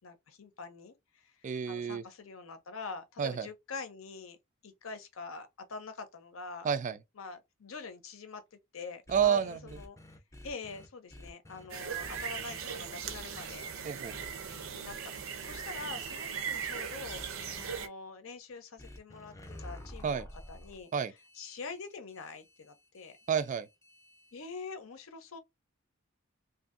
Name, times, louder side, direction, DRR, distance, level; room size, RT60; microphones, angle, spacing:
voice 1, 0.0-1.3 1.7-4.4 4.6-6.7 7.2-10.0 10.4-13.7 14.7-23.1 24.3-25.4, left 4 dB, 80° left, 0.7 m, -45 dB
voice 2, 1.4-2.0 3.2-3.5 6.6-7.0 9.1-9.6 13.8-14.2 20.0-20.3 20.9-21.1 23.3-23.7, right 7 dB, 40° right, 0.3 m, -29 dB
sound 1, 9.1-11.7 12.0-12.6 13.0-13.6 14.1-14.7 15.4-16.0 17.1-17.6 18.8-24.6, left 1 dB, 15° left, 0.5 m, -51 dB
sound 2, 11.7-17.9, right 7 dB, 75° right, 0.6 m, -39 dB
2.6 x 2.5 x 2.5 m
head